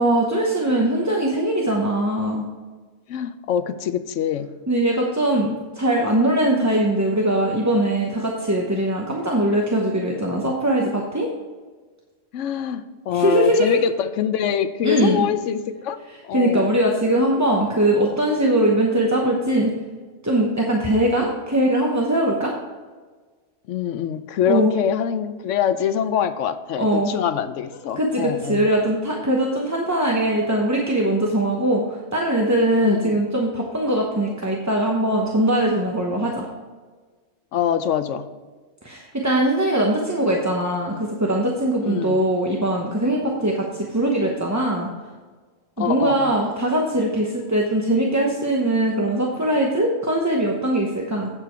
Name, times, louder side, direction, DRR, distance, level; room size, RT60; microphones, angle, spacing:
voice 1, 0.0-2.4 4.7-11.3 13.1-13.8 14.8-15.3 16.3-19.7 20.2-22.5 24.5-24.7 26.8-27.1 28.0-36.4 38.8-44.9 45.8-51.3, right 1 dB, 15° right, -1 dB, 0.8 m, -21 dB
voice 2, 3.1-4.5 12.3-16.0 16.2-16.8 23.7-28.7 32.8-33.2 37.5-38.3 41.8-42.3 45.8-46.3, left 9 dB, 80° left, 12 dB, 0.9 m, -24 dB
8.4 x 7.4 x 4.5 m, 1.4 s
omnidirectional pair, 1.3 m